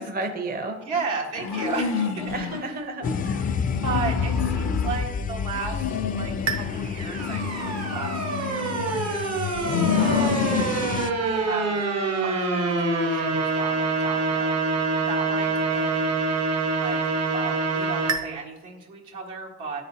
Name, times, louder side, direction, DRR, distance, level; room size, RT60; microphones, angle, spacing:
voice 1, 0.0-1.0 2.2-3.5 9.9-10.2, right 2 dB, 30° right, 5 dB, 0.7 m, -33 dB
voice 2, 0.8-2.7 3.8-10.5 11.1-11.8 12.2-16.3 16.8-17.0 17.3-19.8, right 4 dB, 75° right, -1 dB, 1.6 m, -35 dB
sound 1, 1.4-2.6 3.0-5.1 5.5-6.7 7.1-9.1 9.6-10.7, left 6 dB, 65° left, 0.6 m, -29 dB
sound 2, 3.0-11.1, left 6 dB, 30° left, 0.3 m, -30 dB
sound 3, 6.5-18.2, right 3 dB, 55° right, 1.2 m, -26 dB
11.0 x 4.1 x 2.8 m, 1.1 s
cardioid pair, 90°, 30 cm